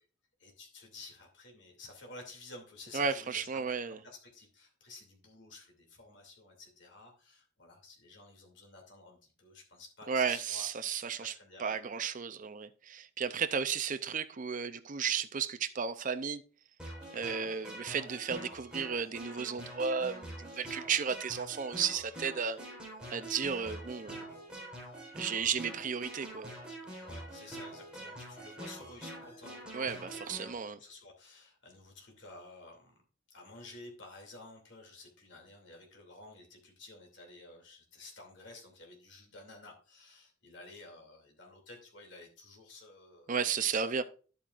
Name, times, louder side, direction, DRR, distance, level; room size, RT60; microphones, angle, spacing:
voice 1, 0.4-10.7 11.2-11.8 17.0-17.2 20.5-20.8 23.6-23.7 26.9-32.9 33.3-43.3 43.7-43.8, left 2 dB, 65° left, 2.6 m, -52 dB
voice 2, 2.9-4.0 10.1-11.3 11.6-16.4 17.1-22.6 23.1-24.2 25.1-26.5 29.7-30.8 43.3-44.0, right 6 dB, 40° right, 0.5 m, -34 dB
sound 1, 16.8-30.5, right 1 dB, 5° right, 3.8 m, -45 dB
11.0 x 8.6 x 2.5 m
head